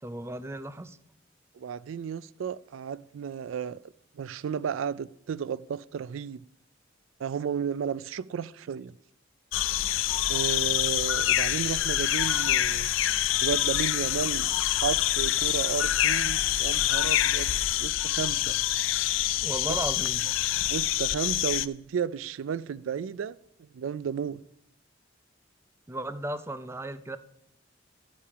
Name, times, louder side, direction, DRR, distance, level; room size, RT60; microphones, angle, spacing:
voice 1, 0.0-1.0 19.4-20.3 25.9-27.2, right 1 dB, 15° right, 0.5 m, -35 dB
voice 2, 1.5-3.8 4.2-6.4 7.2-8.9 10.3-12.9 13.4-14.5 14.8-17.5 17.8-18.6 19.7-19.8 20.7-23.4 23.7-24.4, right 7 dB, 85° right, 0.4 m, -33 dB
sound 1, 9.5-21.7, left 13 dB, 80° left, 0.4 m, -26 dB
13.0 x 8.5 x 4.9 m
head